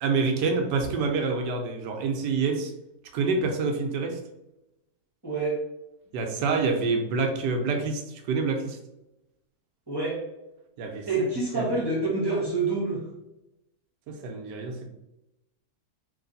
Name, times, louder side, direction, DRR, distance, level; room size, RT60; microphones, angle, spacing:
voice 1, 0.0-2.7 3.1-4.2 6.1-8.8 10.8-11.3 11.5-11.8 14.1-14.9, right 4 dB, 90° right, 4 dB, 1.3 m, -27 dB
voice 2, 5.2-5.6 9.9-10.2 11.1-13.1, right 3 dB, 15° right, -5 dB, 1.4 m, -27 dB
3.3 x 3.1 x 3.9 m, 0.91 s
omnidirectional pair, 1.8 m